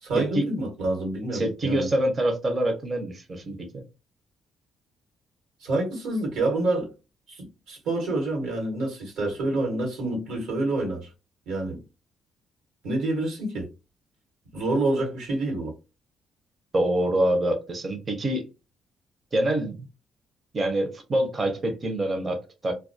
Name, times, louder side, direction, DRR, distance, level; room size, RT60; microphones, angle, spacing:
voice 1, 0.0-1.9 5.6-6.9 7.3-11.1 11.5-11.8 12.8-13.7 14.5-15.7, right 2 dB, 90° right, 1.1 m, -27 dB
voice 2, 1.3-3.8 16.7-18.4 19.3-19.8 20.5-22.7, right 1 dB, 35° right, 0.6 m, -26 dB
2.2 x 2.2 x 2.5 m
cardioid pair, 90°, 0 cm